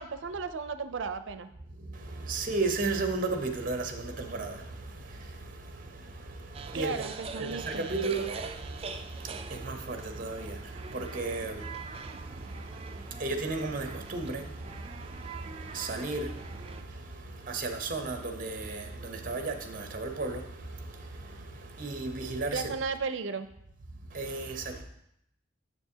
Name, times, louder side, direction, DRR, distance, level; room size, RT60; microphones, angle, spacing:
voice 1, 0.0-1.5 6.7-7.9 22.5-23.5, right 5 dB, 90° right, 0.5 m, -34 dB
voice 2, 1.7-7.1 7.4-22.7 24.0-24.8, right 3 dB, 45° right, 0.7 m, -35 dB
sound 1, 6.5-16.8, right 4 dB, 30° right, 0.4 m, -42 dB
7.0 x 6.8 x 2.8 m
head